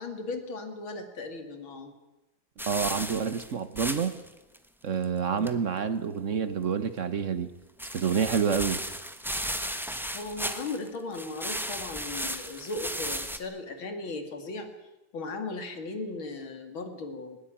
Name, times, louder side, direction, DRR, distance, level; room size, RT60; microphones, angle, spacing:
voice 1, 0.0-1.9 5.2-5.6 10.1-14.7 15.1-17.4, left 3 dB, 70° left, 7 dB, 3.2 m, -37 dB
sound 1, 2.6-4.3 4.5-4.6 5.0-5.1 5.4-5.5 7.8-10.9 11.1-13.4, equal, ahead, 0.8 m, -35 dB
voice 2, 2.7-4.1 4.8-7.5 7.9-8.8, right 6 dB, 45° right, 12 dB, 1.1 m, -28 dB
20.0 x 19.0 x 9.0 m, 1.0 s
omnidirectional pair, 2.3 m